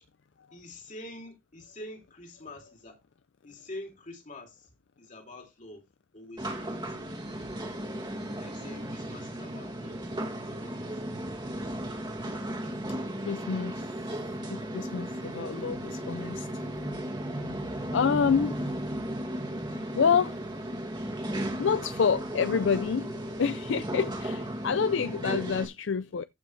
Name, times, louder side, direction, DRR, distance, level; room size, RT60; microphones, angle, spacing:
voice 1, 0.5-3.0 3.4-5.9 6.1-7.0 8.4-10.0 10.3-11.0, left 1 dB, 40° left, 2.9 m, -46 dB
sound 1, 6.4-25.6, right 1 dB, 20° right, 2.1 m, -35 dB
voice 2, 13.2-13.8 14.2-16.7 17.9-18.6 19.9-20.4 21.6-26.2, left 6 dB, 70° left, 0.5 m, -28 dB
14.5 x 6.0 x 3.2 m
head